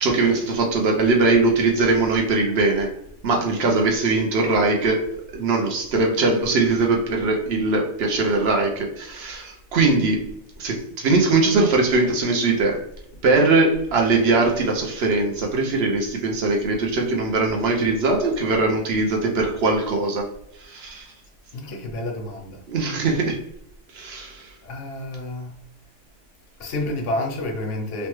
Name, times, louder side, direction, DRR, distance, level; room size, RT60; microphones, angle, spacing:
voice 1, 0.0-2.9 3.2-5.0 5.3-12.8 13.2-20.3 20.6-21.1 22.7-23.4 23.9-24.5, right 3 dB, 65° right, 1 dB, 0.8 m, -21 dB
voice 2, 21.5-22.6 24.6-25.5 26.6-28.1, left 1 dB, 85° left, 3 dB, 1.0 m, -29 dB
3.2 x 2.1 x 3.0 m, 0.77 s
omnidirectional pair, 1.2 m